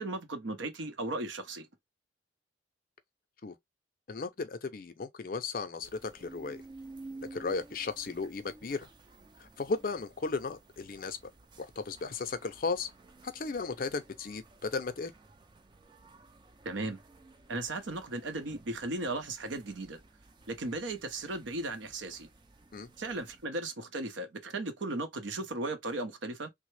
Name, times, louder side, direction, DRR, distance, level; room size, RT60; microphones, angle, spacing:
voice 1, 0.0-1.7 16.6-17.0 17.5-20.0 20.5-22.3 23.0-26.5, right 2 dB, 85° right, 0.7 m, -36 dB
voice 2, 4.1-6.6 7.3-8.9 9.4-11.2 11.6-12.9 13.2-15.1 22.7-22.9, left 4 dB, 50° left, 0.5 m, -35 dB
sound 1, 5.8-23.5, right 2 dB, 25° right, 0.3 m, -54 dB
3.2 x 2.0 x 3.1 m
head